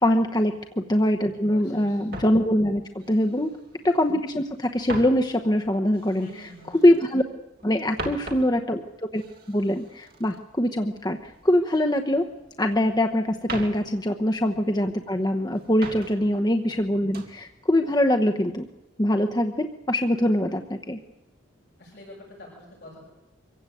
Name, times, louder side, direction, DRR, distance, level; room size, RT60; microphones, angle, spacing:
voice 1, 0.0-3.6 3.8-6.3 6.8-7.2 7.6-8.8 9.1-9.2 9.5-12.3 12.6-18.7 19.0-21.0, left 1 dB, 20° left, 5 dB, 0.9 m, -23 dB
voice 2, 1.5-2.0 6.1-6.9 14.5-14.6 21.8-23.0, left 1 dB, 55° left, -4 dB, 7.1 m, -45 dB
sound 1, 2.1-4.1 4.4-7.2 7.6-11.8 12.1-13.0 13.3-15.1 15.5-16.4 16.7-17.4 17.9-18.2, right 2 dB, 50° right, 3.4 m, -41 dB
24.5 x 16.0 x 9.1 m, 1.0 s
head